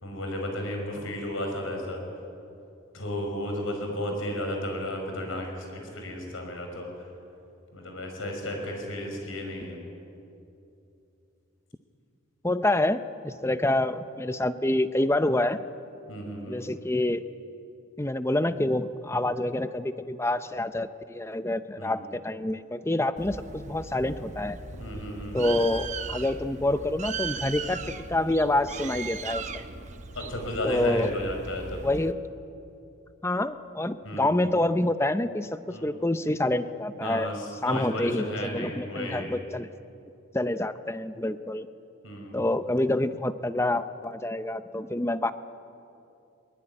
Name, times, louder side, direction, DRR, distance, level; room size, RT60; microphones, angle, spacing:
voice 1, 0.0-2.0 2.9-6.9 7.7-9.8 16.1-16.6 21.8-21.9 24.7-25.4 30.1-31.8 34.0-34.3 35.7-35.9 37.0-39.3 42.0-42.5, left 1 dB, 80° left, 3 dB, 5.9 m, -33 dB
voice 2, 12.4-15.6 16.5-17.2 18.0-24.6 25.3-29.6 30.6-31.1 31.7-32.2 33.2-37.3 37.6-39.7 40.3-41.7 42.3-45.3, left 1 dB, 15° left, 11 dB, 0.6 m, -27 dB
Bird, 23.2-32.1, right 4 dB, 35° right, 1.0 m, -38 dB
22.0 x 21.0 x 9.9 m, 2.7 s
head